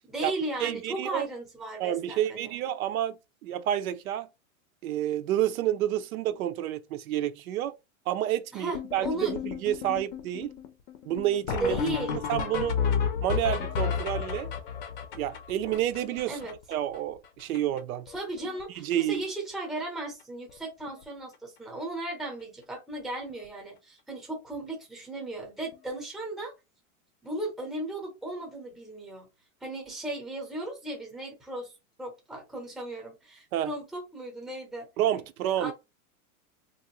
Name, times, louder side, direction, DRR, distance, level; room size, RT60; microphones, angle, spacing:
voice 1, 0.1-2.5 8.5-9.3 11.5-12.2 16.3-16.6 18.1-26.5 27.2-29.3 29.6-31.7 32.0-35.7, right 2 dB, ahead, 0.7 m, -36 dB
voice 2, 0.6-1.3 1.8-3.2 3.4-4.3 4.8-7.7 8.1-10.5 11.1-11.8 12.1-12.8 13.2-14.5 15.1-16.4 16.7-18.1 18.7-19.2 33.5-33.7 35.0-35.7, right 12 dB, 75° right, 0.6 m, -29 dB
sound 1, 8.7-17.0 17.2-17.3 17.5-17.8 18.1-18.6 18.9-19.2 20.0-20.1 20.5-20.6 20.9-21.0 23.3-23.4 25.7-25.8, left 7 dB, 40° left, 0.6 m, -32 dB
3.4 x 2.5 x 2.9 m
supercardioid pair, 160°, 43 cm